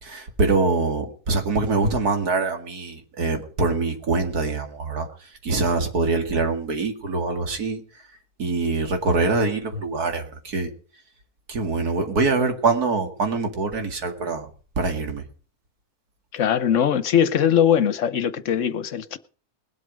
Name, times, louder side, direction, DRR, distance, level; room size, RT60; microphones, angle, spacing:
voice 1, 0.0-7.8 8.4-10.7 11.5-14.5 14.8-15.2, right 3 dB, 85° right, 2.7 m, -24 dB
voice 2, 16.3-19.2, left 9 dB, 60° left, 1.1 m, -21 dB
20.5 x 8.1 x 5.2 m
omnidirectional pair, 1.6 m